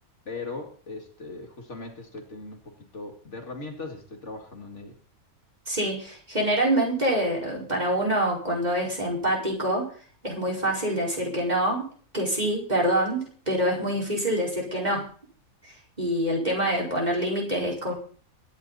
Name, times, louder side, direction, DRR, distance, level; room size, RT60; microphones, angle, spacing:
voice 1, 0.3-5.0, left 3 dB, 55° left, 3 dB, 2.5 m, -39 dB
voice 2, 5.7-9.9 10.2-11.8 12.1-15.0 15.6-17.9, right 1 dB, 30° right, -1 dB, 5.2 m, -26 dB
23.0 x 10.0 x 4.1 m, 0.43 s
omnidirectional pair, 1.5 m